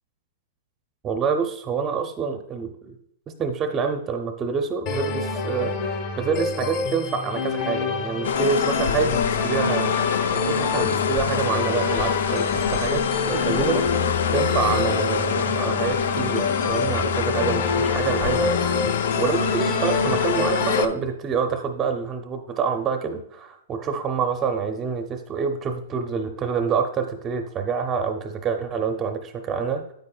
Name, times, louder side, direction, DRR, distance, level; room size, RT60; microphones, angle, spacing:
voice 1, 1.0-3.0 3.3-9.8 10.3-13.9 14.3-18.6 18.9-29.9, right 6 dB, 15° right, 5 dB, 0.5 m, -27 dB
sound 1, 4.9-20.9, left 4 dB, 35° left, 0.9 m, -27 dB
sound 2, 8.2-20.9, left 7 dB, 80° left, 0.5 m, -25 dB
9.2 x 8.5 x 2.3 m, 0.74 s
hypercardioid pair, 165°, 0 cm